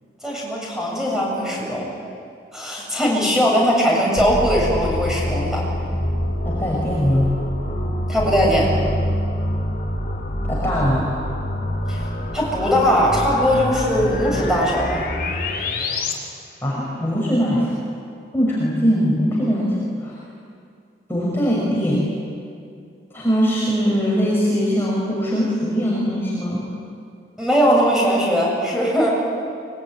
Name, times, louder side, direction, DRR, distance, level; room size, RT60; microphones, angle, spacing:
voice 1, 0.2-1.9 2.5-5.6 8.1-8.7 11.9-12.1 12.3-15.0 27.4-29.1, equal, 5° right, -3 dB, 7.9 m, -20 dB
sound 1, 4.2-16.1, left 1 dB, 55° left, 4.5 m, -26 dB
voice 2, 6.4-7.3 10.5-11.1 16.6-17.8 18.3-20.2 21.1-22.1 23.1-26.6, equal, 15° left, -5 dB, 5.5 m, -21 dB
24.5 x 23.0 x 9.7 m, 2.4 s
head